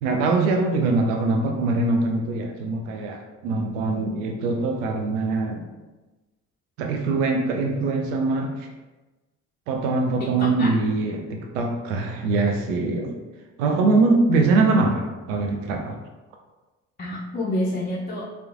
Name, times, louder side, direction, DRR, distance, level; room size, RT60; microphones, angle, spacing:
voice 1, 0.0-5.6 6.8-8.7 9.7-13.1 13.6-16.0, right 3 dB, 85° right, 3 dB, 0.5 m, -23 dB
voice 2, 10.2-10.7 17.0-18.2, left 1 dB, 25° left, -5 dB, 0.4 m, -28 dB
2.9 x 2.0 x 2.4 m, 1.1 s
hypercardioid pair, 55°, 37 cm